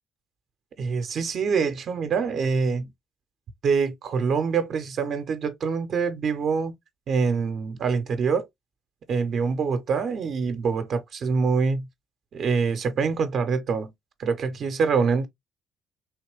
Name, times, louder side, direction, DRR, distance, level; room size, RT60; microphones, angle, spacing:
voice 1, 0.8-2.9 3.6-6.7 7.1-8.5 9.1-11.9 12.3-13.9 14.2-15.3, right 5 dB, 55° right, 0.6 m, -25 dB
3.4 x 2.9 x 3.1 m
hypercardioid pair, 50°, 0 cm